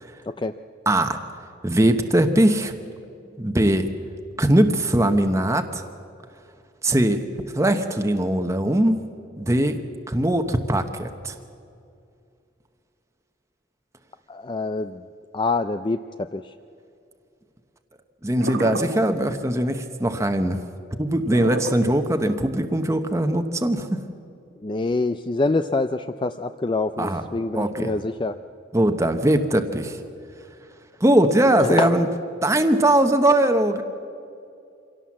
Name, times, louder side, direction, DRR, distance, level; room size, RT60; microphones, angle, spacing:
voice 1, 0.9-1.2 1.6-2.7 3.4-3.9 4.4-5.8 6.8-7.2 7.5-9.0 9.4-9.8 10.1-11.3 18.2-20.6 21.0-24.0 27.0-27.2 27.5-27.9 28.7-30.0 31.0-32.1 32.4-33.8, right 1 dB, 15° right, 6 dB, 1.0 m, -20 dB
voice 2, 14.3-15.0 15.3-16.0 16.3-16.4 24.6-28.4 31.6-31.9, left 3 dB, 25° left, 10 dB, 0.4 m, -25 dB
sound 1, 18.4-19.2 21.3-22.4 23.0-23.1, right 2 dB, 80° right, 1.5 m, -30 dB
25.5 x 17.0 x 7.4 m, 2.5 s
head